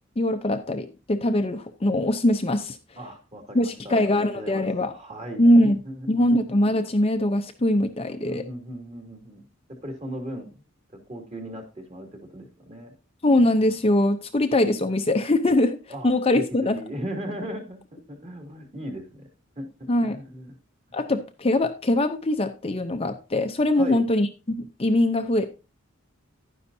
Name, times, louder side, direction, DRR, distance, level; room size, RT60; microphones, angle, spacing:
voice 1, 0.2-2.8 3.5-4.9 5.4-5.8 6.1-8.4 13.2-15.8 16.0-16.8 19.9-20.2 20.9-24.3 24.8-25.5, left 1 dB, 30° left, 7 dB, 0.7 m, -22 dB
voice 2, 3.0-4.7 4.9-6.1 8.2-9.4 9.8-10.6 11.1-12.1 12.3-12.9 15.9-19.3 19.6-20.5 23.8-24.0, equal, 30° right, 3 dB, 2.7 m, -37 dB
11.5 x 9.7 x 2.7 m, 0.31 s
head